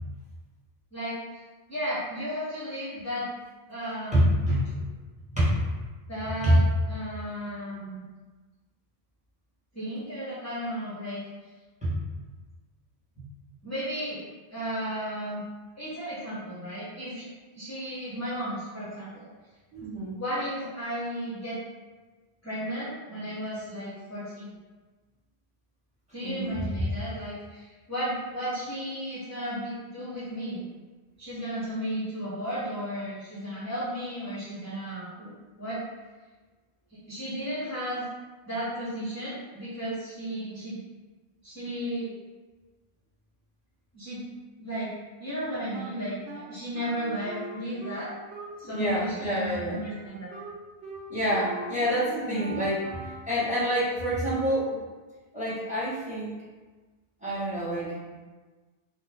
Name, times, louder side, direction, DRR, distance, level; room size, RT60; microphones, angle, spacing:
voice 1, 0.9-1.4 1.7-3.3 3.7-4.4 6.1-8.0 9.7-11.2 13.6-14.2 14.5-15.4 15.8-17.3 17.5-19.3 20.2-21.6 22.4-24.5 26.1-30.6 31.2-35.3 35.6-35.8 36.9-38.0 38.4-40.8 41.4-42.2 43.9-44.2 44.6-44.9 45.2-48.1 48.6-50.3 52.2-52.4, equal, 15° left, -10 dB, 0.8 m, -34 dB
voice 2, 4.1-4.8 5.3-5.6 6.3-6.6 11.8-12.0 13.2-13.3 19.7-20.2 26.2-26.6 48.6-49.8 51.1-54.8 55.3-56.3 57.2-57.9, equal, 5° right, -10 dB, 1.5 m, -27 dB
Wind instrument woodwind instrument, 45.7-48.6 48.9-53.4, right 2 dB, 80° right, 0.9 m, -42 dB
4.4 x 2.4 x 3.5 m, 1.3 s
omnidirectional pair, 1.0 m